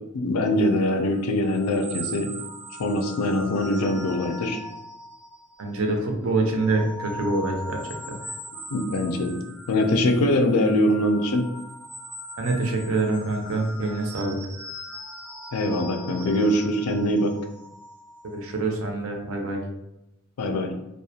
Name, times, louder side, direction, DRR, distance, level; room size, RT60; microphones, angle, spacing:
voice 1, 0.1-2.3 2.8-4.6 8.7-9.4 9.7-11.5 15.5-17.3 20.4-20.7, left 1 dB, 85° left, 5 dB, 0.4 m, -23 dB
sound 1, 0.7-5.9 6.3-18.6, equal, 10° right, 0.4 m, -40 dB
voice 2, 5.6-7.8 8.1-8.2 12.4-14.4 18.3-19.6, right 2 dB, 65° right, 2 dB, 0.5 m, -25 dB
2.4 x 2.1 x 2.7 m, 0.88 s
head